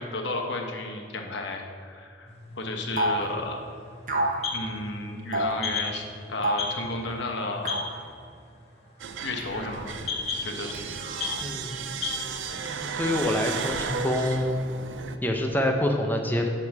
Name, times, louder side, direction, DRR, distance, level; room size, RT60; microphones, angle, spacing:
voice 1, 0.0-3.6 4.5-7.8 9.2-10.0 10.4-10.8, left 2 dB, 65° left, 2 dB, 1.0 m, -33 dB
sound 1, 2.3-12.2, left 4 dB, 30° left, 1.2 m, -37 dB
sound 2, 3.0-3.3 4.1-4.4 5.3-5.6 6.4-6.8 7.6-8.0 9.4-9.9 10.7-11.4, right 1 dB, 40° right, 0.9 m, -29 dB
sound 3, 9.0-15.2, right 6 dB, 70° right, 0.5 m, -35 dB
voice 2, 11.4-11.9 12.6-14.7 15.2-16.5, left 1 dB, 10° left, 3 dB, 0.6 m, -26 dB
9.1 x 3.9 x 5.9 m, 2.4 s
head